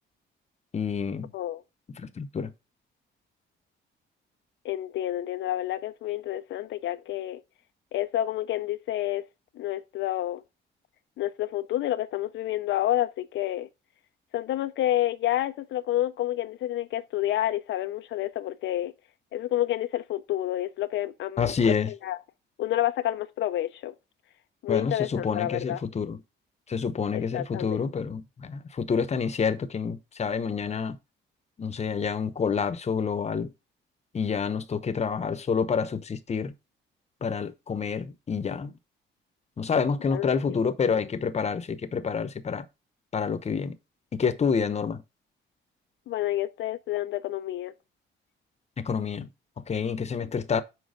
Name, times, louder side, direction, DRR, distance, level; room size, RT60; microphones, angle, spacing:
voice 1, 0.7-1.3 1.9-2.5 21.4-21.9 24.7-26.2 26.7-31.0 31.6-33.5 34.1-36.5 37.2-38.7 39.6-42.7 43.1-43.8 44.1-45.0 48.8-49.3 49.6-50.6, left 6 dB, 35° left, 0.8 m, -28 dB
voice 2, 4.6-7.4 7.9-9.2 9.6-10.4 11.2-13.7 14.3-18.9 19.3-22.2 22.6-23.9 24.6-25.8 27.1-27.9 40.1-40.6 46.1-47.7, left 13 dB, 70° left, 0.4 m, -29 dB
6.3 x 4.6 x 5.0 m
cardioid pair, 90°, 20 cm